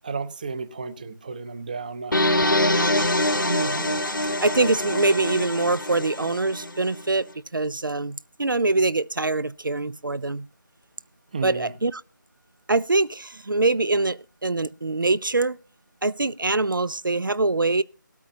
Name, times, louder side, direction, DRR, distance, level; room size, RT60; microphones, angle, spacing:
voice 1, 0.0-2.2 11.3-11.7, right 4 dB, 25° right, 0.7 m, -33 dB
sound 1, 2.1-7.0, left 1 dB, 80° left, 1.5 m, -24 dB
voice 2, 3.5-4.0 4.4-7.3 7.5-10.4 11.4-12.0 12.7-15.6 16.0-17.8, right 2 dB, 80° right, 0.5 m, -24 dB
17.0 x 13.0 x 2.7 m
figure-of-eight pair, 160°, 11 cm